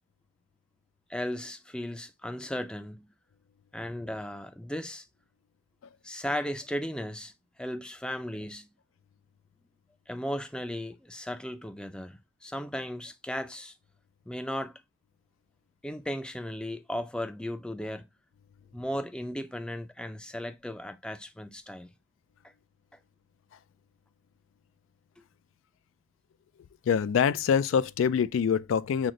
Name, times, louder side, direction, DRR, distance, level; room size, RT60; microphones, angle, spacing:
voice 1, 1.1-3.1 3.7-5.0 6.0-7.3 7.6-8.7 10.1-13.7 14.3-14.8 15.8-18.1 18.7-21.9, equal, 5° left, 0.3 m, -36 dB
voice 2, 26.8-29.1, left 7 dB, 85° left, 0.3 m, -25 dB
6.2 x 2.1 x 3.7 m
head